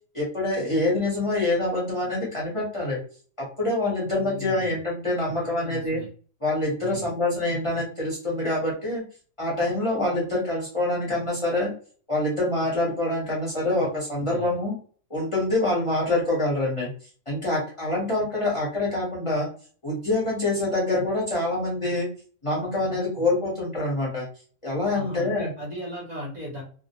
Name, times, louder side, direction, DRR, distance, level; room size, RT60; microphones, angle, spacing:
voice 1, 0.1-3.0 3.4-6.0 6.4-9.0 9.4-11.7 12.1-14.7 15.1-16.9 17.3-19.5 19.8-22.1 22.4-24.2 24.6-25.5, left 2 dB, 30° left, -4 dB, 0.7 m, -25 dB
voice 2, 4.2-4.8 5.3-6.1 6.8-7.1 14.2-14.6 23.2-23.3 24.9-26.6, left 1 dB, 40° right, -4 dB, 0.7 m, -38 dB
2.3 x 2.0 x 2.8 m, 0.43 s
omnidirectional pair, 1.4 m